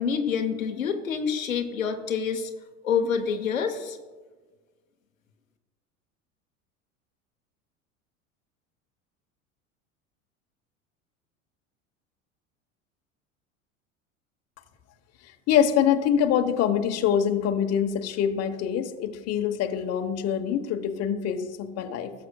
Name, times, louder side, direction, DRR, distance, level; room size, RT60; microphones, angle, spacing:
voice 1, 0.0-2.5 2.8-4.0, left 6 dB, 85° left, 6 dB, 0.8 m, -27 dB
voice 2, 15.5-22.1, left 9 dB, 40° left, 7 dB, 1.0 m, -25 dB
17.0 x 7.5 x 2.2 m, 1.3 s
figure-of-eight pair, 75°, 39 cm